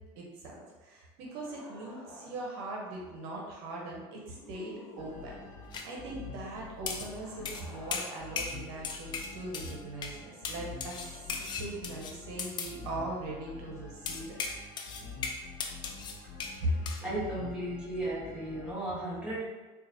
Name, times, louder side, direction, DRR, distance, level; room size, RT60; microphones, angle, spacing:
voice 1, 0.2-5.4 5.8-14.4 16.6-17.0, right 1 dB, 75° right, -2 dB, 0.9 m, -39 dB
sound 1, 1.2-2.7 4.1-5.8 7.0-9.6 11.0-12.0, left 1 dB, 10° left, 1.1 m, -53 dB
sound 2, 5.0-18.7, left 4 dB, 65° left, 0.9 m, -47 dB
sound 3, 5.7-5.9 6.9-7.1 7.5-7.7 7.9-8.6 8.8-9.8 10.0-10.2 10.4-12.8 14.1-16.6 16.9-17.0, left 5 dB, 35° left, 0.4 m, -37 dB
voice 2, 17.0-19.4, right 1 dB, 10° right, -8 dB, 1.4 m, -35 dB
3.9 x 2.5 x 2.7 m, 1.2 s
supercardioid pair, 110°, 13 cm